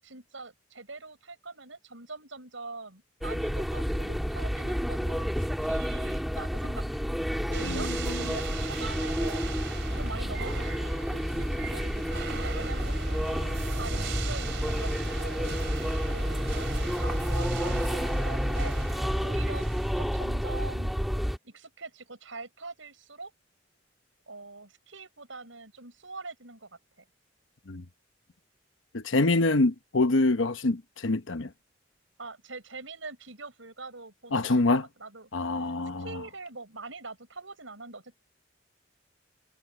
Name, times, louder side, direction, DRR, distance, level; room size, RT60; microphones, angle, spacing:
voice 1, 0.0-7.0 7.5-9.5 10.0-13.3 13.7-15.7 16.1-19.7 20.0-21.1 21.4-23.3 24.3-26.7 32.2-35.3 35.6-35.7 36.0-38.2, right 3 dB, 85° right, 6.7 m, -43 dB
sound 1, 3.2-21.4, equal, ahead, 3.6 m, -30 dB
sound 2, 7.5-20.2, right 5 dB, 65° right, 3.6 m, -41 dB
voice 2, 7.6-8.2 27.7-27.8 28.9-31.5 34.3-34.8 35.3-36.2, left 2 dB, 85° left, 1.0 m, -26 dB
head